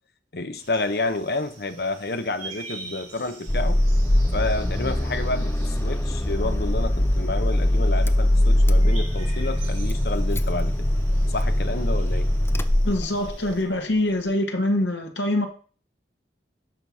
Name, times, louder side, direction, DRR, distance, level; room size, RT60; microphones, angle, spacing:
voice 1, 0.3-3.8 4.3-10.9 11.3-12.3, left 2 dB, 60° left, 0.9 m, -30 dB
sound 1, 0.5-13.6, right 3 dB, 35° right, 5.7 m, -46 dB
Car / Engine starting, 3.5-13.5, left 1 dB, 15° left, 0.4 m, -22 dB
voice 2, 12.8-15.5, left 1 dB, 85° left, 1.6 m, -24 dB
9.9 x 5.9 x 4.8 m
head